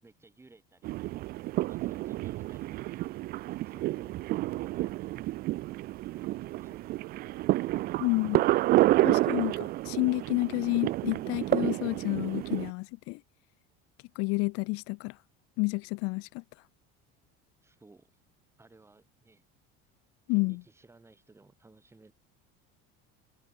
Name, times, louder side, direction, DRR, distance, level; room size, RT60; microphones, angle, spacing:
voice 1, 0.0-4.2 4.6-7.3 17.6-18.2 18.6-19.4 20.3-22.1, right 3 dB, 10° right, 5.5 m, -59 dB
sound 1, 0.8-12.7, right 17 dB, 35° right, 0.4 m, -29 dB
voice 2, 8.0-8.5 9.0-13.2 14.1-15.2 15.6-16.4 20.3-20.6, left 26 dB, 50° left, 0.6 m, -30 dB
cardioid pair, 175°, 29 cm